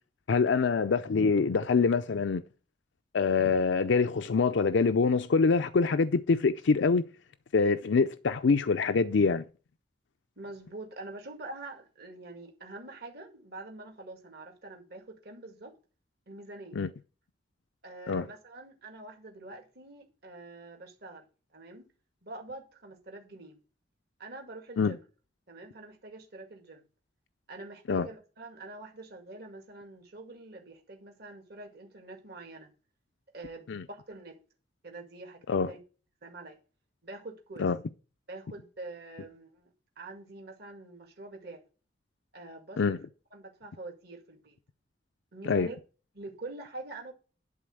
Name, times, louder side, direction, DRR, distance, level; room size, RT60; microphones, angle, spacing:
voice 1, 0.3-2.4 3.1-7.1 7.5-9.4 16.8-16.9 18.1-18.3 24.8-25.0 27.9-28.1 33.7-33.8 35.5-35.7 37.6-37.8 42.8-43.0 45.5-45.7, left 4 dB, 75° left, 0.5 m, -25 dB
voice 2, 10.4-15.7 16.3-16.8 17.8-21.2 21.5-21.9 22.2-23.6 24.2-25.0 25.5-26.8 27.5-32.7 33.3-34.4 34.8-35.8 36.2-36.6 37.0-37.7 38.3-39.7 40.0-41.6 42.3-43.0 43.3-44.6 45.3-45.8 46.1-47.1, right 2 dB, 60° right, 2.2 m, -45 dB
11.0 x 4.0 x 7.6 m
head